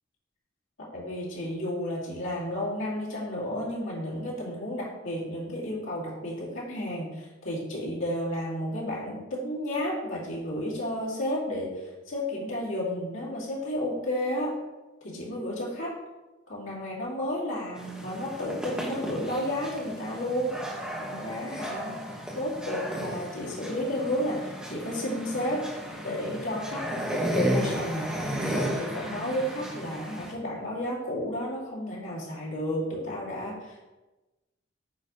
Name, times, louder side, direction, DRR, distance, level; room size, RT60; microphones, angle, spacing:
voice 1, 0.8-14.6 15.0-15.9 16.5-20.5 21.0-22.0 22.3-25.7 26.0-33.9, left 1 dB, 85° left, -6 dB, 2.3 m, -32 dB
sound 1, 17.8-30.3, equal, 5° right, 1.1 m, -34 dB
8.4 x 3.1 x 5.3 m, 1.1 s
head